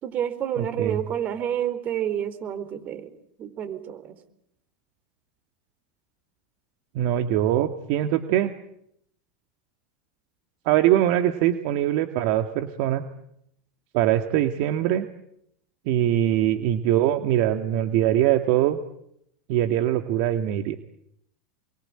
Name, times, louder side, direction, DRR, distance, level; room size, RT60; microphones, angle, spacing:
voice 1, 0.0-3.1 3.4-4.1, right 10 dB, 40° right, 12 dB, 4.5 m, -29 dB
voice 2, 0.6-1.0 7.0-8.5 10.7-13.0 13.9-15.1 15.9-18.8 19.5-20.8, right 12 dB, 60° right, 7 dB, 1.9 m, -22 dB
28.0 x 23.5 x 8.9 m, 0.77 s
hypercardioid pair, 105°, 4 cm